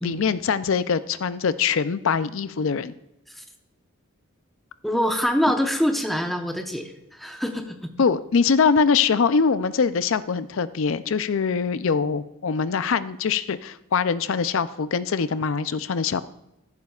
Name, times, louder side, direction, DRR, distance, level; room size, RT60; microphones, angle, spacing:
voice 1, 0.0-2.9 8.0-16.2, left 5 dB, 65° left, 14 dB, 0.4 m, -23 dB
voice 2, 4.8-7.9, equal, ahead, 3 dB, 0.9 m, -25 dB
14.5 x 11.0 x 2.4 m, 0.87 s
head